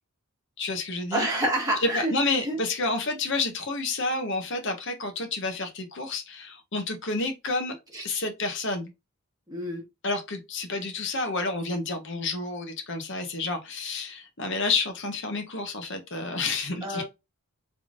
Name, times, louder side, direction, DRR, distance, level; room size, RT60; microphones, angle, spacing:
voice 1, 0.6-1.3 1.8-7.7 8.0-8.9 10.0-17.0, left 3 dB, 55° left, 1.0 m, -29 dB
voice 2, 1.1-2.1 2.4-2.6 7.9-8.1 9.5-9.8 16.8-17.0, right 1 dB, 15° right, 1.5 m, -27 dB
3.5 x 3.3 x 2.4 m
head